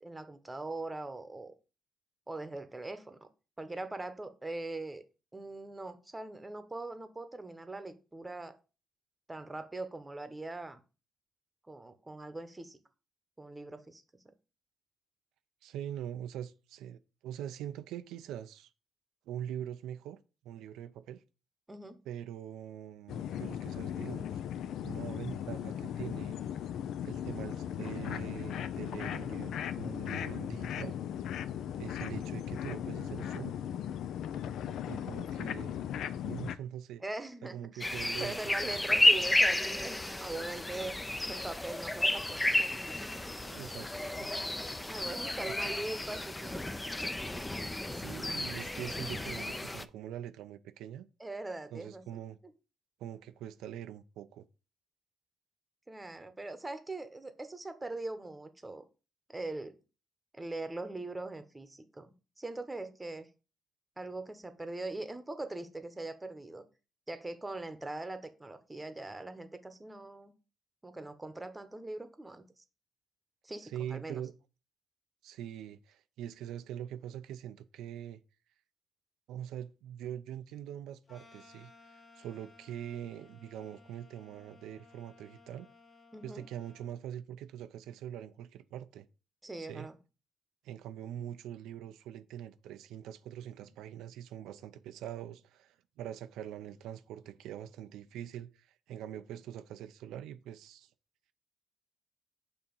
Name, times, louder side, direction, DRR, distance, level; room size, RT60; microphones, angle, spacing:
voice 1, 0.0-1.5 2.3-3.3 3.6-5.0 5.3-8.6 9.3-10.8 11.7-12.8 13.4-14.0 21.7-22.0 37.0-37.9 38.2-41.0 41.2-43.3 44.9-47.2 51.2-52.0 55.9-58.8 59.3-59.8 60.3-63.3 64.0-66.6 67.1-70.3 70.8-72.4 73.4-74.2 86.1-86.4 89.4-90.0, right 2 dB, 15° right, 0.9 m, -41 dB
voice 2, 15.6-18.7 19.3-20.2 20.4-21.2 22.1-24.4 24.8-26.4 27.1-30.9 31.8-33.6 34.9-35.8 36.2-37.0 37.5-39.1 43.4-44.1 44.9-45.1 45.6-45.7 47.9-51.1 51.7-52.4 53.0-54.4 73.6-74.3 75.2-78.2 79.3-85.7 86.2-89.1 89.6-89.9 90.6-100.9, right 10 dB, 90° right, 0.4 m, -43 dB
sound 1, 23.1-36.6, left 9 dB, 75° left, 0.4 m, -37 dB
sound 2, 37.8-49.8, left 1 dB, 15° left, 0.5 m, -32 dB
sound 3, 81.1-86.9, left 3 dB, 30° left, 1.4 m, -59 dB
6.8 x 2.9 x 5.4 m
cardioid pair, 90°, 0 cm